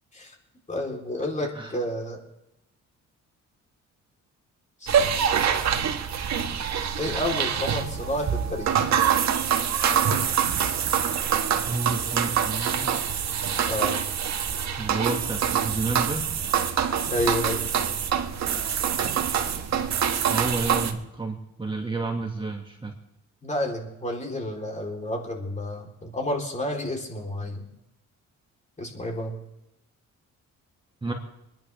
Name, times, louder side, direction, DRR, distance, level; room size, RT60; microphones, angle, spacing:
voice 1, 0.7-2.2 4.8-5.3 7.0-9.0 13.7-14.1 17.0-17.6 23.4-27.6 28.8-29.4, left 1 dB, 25° left, 0 dB, 3.9 m, -30 dB
sound 1, 4.9-20.9, right 8 dB, 60° right, 1.6 m, -25 dB
voice 2, 11.6-13.0 14.8-16.4 20.3-22.9 31.0-31.1, right 3 dB, 15° right, 1 dB, 2.2 m, -31 dB
27.0 x 10.5 x 3.5 m, 0.87 s
cardioid pair, 90°, 30 cm